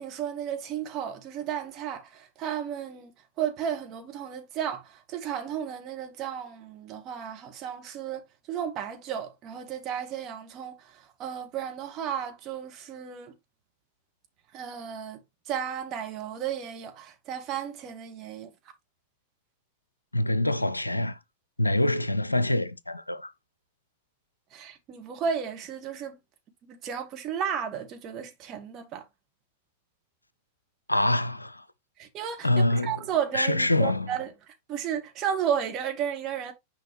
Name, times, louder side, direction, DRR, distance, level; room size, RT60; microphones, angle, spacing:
voice 1, 0.0-3.1 3.4-13.3 14.5-15.2 15.5-18.5 24.5-26.2 26.6-29.0 32.0-36.5, right 8 dB, 35° right, 1.6 m, -33 dB
voice 2, 20.1-21.2 21.6-23.3 30.9-31.6 32.4-32.9 33.3-34.1, left 1 dB, 85° left, 0.5 m, -25 dB
6.4 x 5.1 x 3.1 m
figure-of-eight pair, 90°, 0 cm